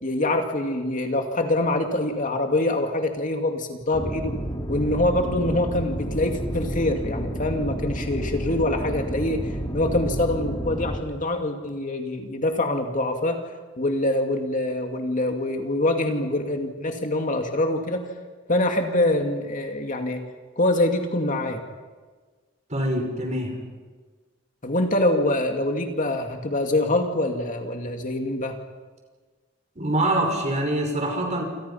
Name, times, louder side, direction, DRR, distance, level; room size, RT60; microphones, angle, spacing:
voice 1, 0.0-4.4 4.7-9.4 9.7-13.4 13.8-18.0 18.5-20.2 20.6-21.6 24.6-28.6, left 1 dB, 40° left, 4 dB, 2.3 m, -24 dB
sound 1, 3.9-11.0, equal, 20° left, 3.7 m, -30 dB
voice 2, 22.7-23.6 29.8-31.4, right 1 dB, 35° right, 2 dB, 5.7 m, -24 dB
28.5 x 27.5 x 5.7 m, 1.4 s
head